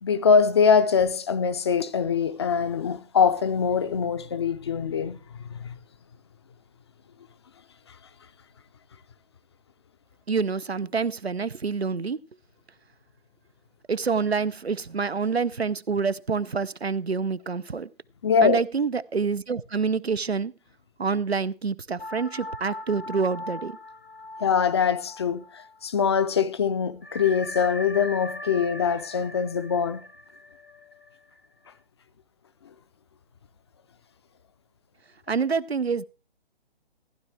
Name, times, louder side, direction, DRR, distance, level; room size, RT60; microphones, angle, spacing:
voice 1, 0.0-5.2 5.5-5.7 18.2-18.6 24.4-30.0, left 6 dB, 25° left, 0.5 m, -23 dB
voice 2, 10.3-12.2 13.9-17.9 18.4-20.5 21.0-23.7 35.3-36.1, right 5 dB, 85° right, 0.7 m, -27 dB
sound 1, 22.0-26.0 26.3-26.4 27.0-31.7, left 1 dB, 70° left, 1.5 m, -40 dB
15.0 x 10.5 x 3.2 m
figure-of-eight pair, 135°, 31 cm